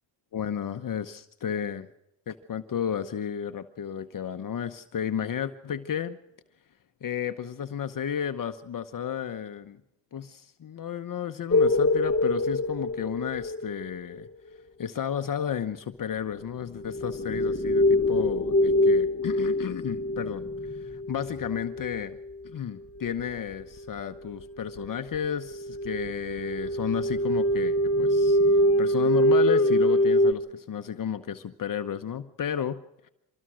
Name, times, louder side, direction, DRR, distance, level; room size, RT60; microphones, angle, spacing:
voice 1, 0.3-1.9 2.3-6.2 7.0-9.8 10.1-14.3 14.8-22.2 22.4-33.1, left 8 dB, 45° left, 9 dB, 1.0 m, -33 dB
sound 1, 11.5-13.9 16.8-22.4 23.2-23.3 23.6-23.8 24.4-24.5 24.7-24.9 25.1-30.3, left 1 dB, 30° left, 1.3 m, -24 dB
25.0 x 19.0 x 6.3 m, 0.86 s
cardioid pair, 85°, 45 cm